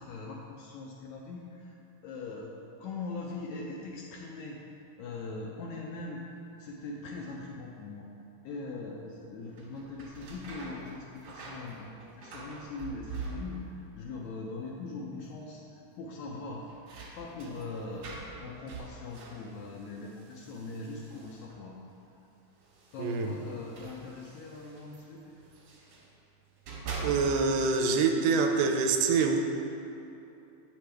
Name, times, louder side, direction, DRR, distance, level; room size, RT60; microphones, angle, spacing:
voice 1, 0.0-1.5 2.0-2.5 2.8-4.6 5.0-6.2 6.6-8.0 8.4-13.6 14.0-15.6 16.0-16.7 17.2-21.8 22.9-25.3, left 3 dB, 80° left, -1 dB, 1.7 m, -41 dB
sound 1, 9.5-13.9 14.1-14.8 15.1-15.2 16.3-21.7 22.6-26.1 26.5-27.7, right 4 dB, 65° right, 2.2 m, -44 dB
voice 2, 23.0-23.3 27.0-29.4, right 4 dB, 80° right, 4 dB, 2.1 m, -25 dB
8.4 x 5.9 x 3.3 m, 2.9 s
omnidirectional pair, 3.8 m